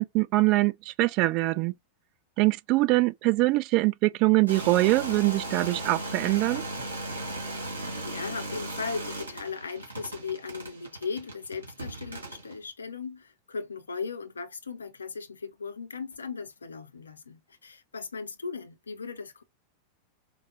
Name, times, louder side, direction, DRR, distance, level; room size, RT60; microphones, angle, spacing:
voice 1, 0.0-1.7 2.4-6.6, right 20 dB, 40° right, 0.3 m, -23 dB
sound 1, 4.5-12.5, right 2 dB, 75° right, 1.8 m, -37 dB
voice 2, 7.7-19.4, left 5 dB, 75° left, 0.6 m, -37 dB
4.5 x 2.0 x 2.6 m
figure-of-eight pair, 90°, 0 cm